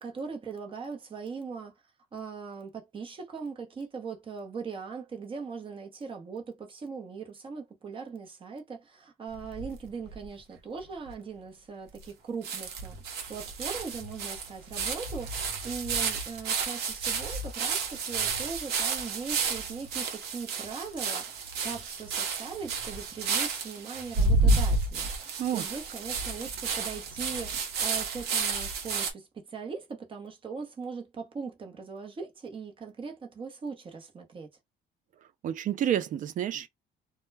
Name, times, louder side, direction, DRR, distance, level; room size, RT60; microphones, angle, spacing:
voice 1, 0.0-1.7 2.1-13.0 13.3-34.5, right 5 dB, 30° right, 0.8 m, -40 dB
sound 1, 9.3-10.3 10.8-10.9 11.1-11.2 12.0-12.1 12.4-29.1, right 4 dB, 75° right, 0.8 m, -31 dB
voice 2, 35.4-36.7, right 10 dB, 50° right, 0.4 m, -29 dB
2.2 x 2.1 x 3.2 m
cardioid pair, 110°, 17 cm